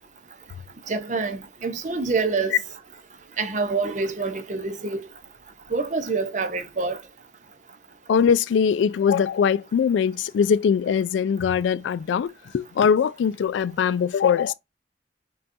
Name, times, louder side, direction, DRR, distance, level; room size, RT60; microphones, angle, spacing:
voice 1, 0.9-2.6 3.4-5.0 5.7-7.0, right 4 dB, 40° right, 0.6 m, -26 dB
voice 2, 8.1-12.3 12.5-14.5, left 7 dB, 85° left, 0.3 m, -21 dB
5.1 x 2.4 x 2.5 m
head